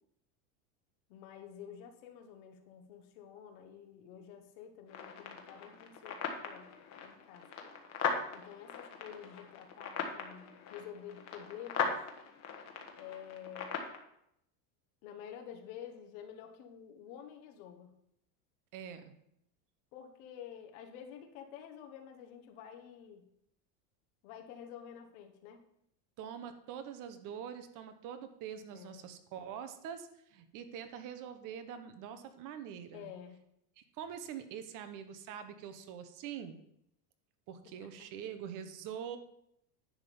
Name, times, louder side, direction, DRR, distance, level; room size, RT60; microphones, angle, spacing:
voice 1, 1.1-6.7 7.0-7.5 8.3-12.0 13.0-13.9 15.0-17.9 19.9-23.3 24.2-25.6 28.7-29.1 32.9-33.4 37.6-37.9, left 9 dB, 65° left, 4 dB, 1.4 m, -50 dB
sound 1, 4.9-14.0, left 5 dB, 35° left, 1.3 m, -39 dB
voice 2, 18.7-19.1 26.2-33.1 33.8-36.6 37.5-39.2, right 8 dB, 45° right, 9 dB, 1.0 m, -44 dB
10.5 x 3.8 x 6.9 m, 0.77 s
supercardioid pair, 145°, 45 cm